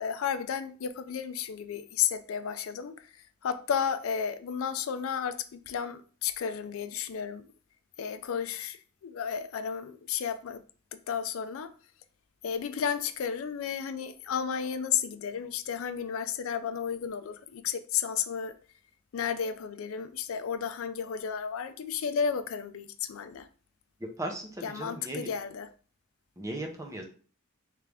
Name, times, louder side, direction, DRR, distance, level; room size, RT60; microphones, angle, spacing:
voice 1, 0.0-3.1 3.4-7.5 8.0-10.6 11.1-11.7 12.4-18.5 19.1-23.5 24.6-25.7, left 7 dB, 80° left, 0.4 m, -33 dB
voice 2, 24.2-25.3 26.4-27.0, right 1 dB, 15° right, 0.8 m, -37 dB
3.7 x 3.3 x 3.4 m
head